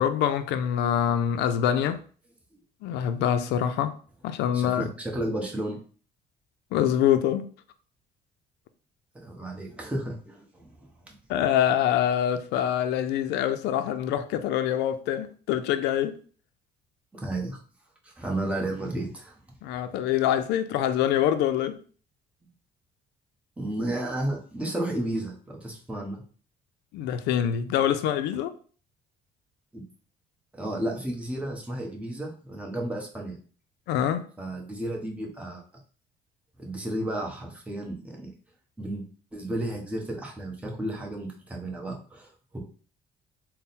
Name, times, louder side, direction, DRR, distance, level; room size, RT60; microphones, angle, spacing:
voice 1, 0.0-2.0 2.8-3.9 4.2-4.9 6.7-7.5 11.3-16.1 19.6-21.8 26.9-28.5 33.9-34.3, left 10 dB, 85° left, 0.4 m, -25 dB
voice 2, 4.5-5.8 9.1-11.2 17.1-17.6 18.0-19.4 23.6-26.2 29.7-29.8 30.5-33.4 34.4-35.6 36.6-38.3 38.8-39.0 39.3-42.6, right 1 dB, 5° right, 1.0 m, -33 dB
3.5 x 2.1 x 4.1 m
cardioid pair, 110°, 17 cm